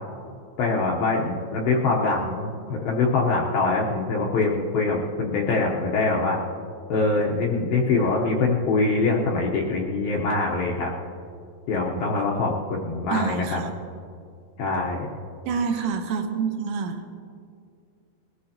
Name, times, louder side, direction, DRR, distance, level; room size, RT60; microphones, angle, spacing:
voice 1, 0.6-6.4 6.9-10.9 11.7-12.5 12.8-13.6 14.6-15.1, left 3 dB, 75° left, -2 dB, 2.3 m, -24 dB
voice 2, 13.1-13.7 15.5-17.0, right 5 dB, 80° right, 4 dB, 3.2 m, -27 dB
21.0 x 14.5 x 2.9 m, 2.3 s
omnidirectional pair, 5.3 m